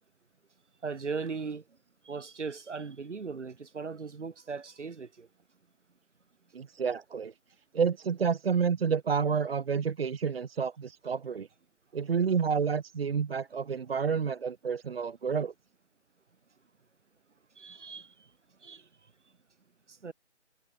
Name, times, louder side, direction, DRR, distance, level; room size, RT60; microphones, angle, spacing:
voice 1, 0.8-1.6 2.0-5.3 17.6-18.3 18.6-18.9 19.9-20.1, right 5 dB, 75° right, 1.0 m, -38 dB
voice 2, 6.5-7.3 7.7-11.5 11.9-15.5, right 6 dB, 55° right, 0.5 m, -29 dB
figure-of-eight pair, 155°, 36 cm